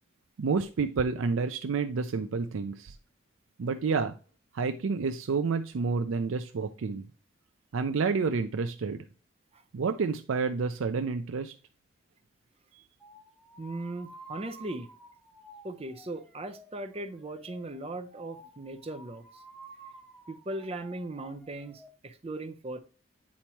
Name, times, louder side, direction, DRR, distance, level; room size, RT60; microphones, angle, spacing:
voice 1, 0.4-2.9 3.6-4.1 4.5-7.0 7.7-9.0 9.7-11.5, right 4 dB, 80° right, 0.4 m, -29 dB
sound 1, 13.0-21.9, right 2 dB, 5° left, 1.1 m, -52 dB
voice 2, 13.6-14.9 15.6-19.2 20.3-22.8, right 2 dB, 30° right, 0.6 m, -38 dB
8.5 x 4.4 x 3.0 m
head